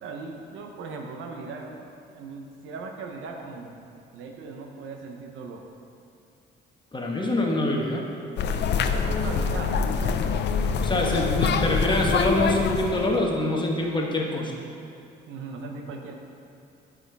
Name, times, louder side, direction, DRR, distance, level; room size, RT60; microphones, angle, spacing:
voice 1, 0.0-3.8 4.1-5.7 8.9-10.5 10.8-11.4 15.3-16.2, right 4 dB, 85° right, 2 dB, 0.8 m, -39 dB
voice 2, 6.9-8.1 10.8-14.6, left 1 dB, 25° left, -1 dB, 1.1 m, -25 dB
sound 1, 8.4-13.2, left 6 dB, 60° left, 0.4 m, -25 dB
9.2 x 5.0 x 3.4 m, 2.5 s
cardioid pair, 90°, 20 cm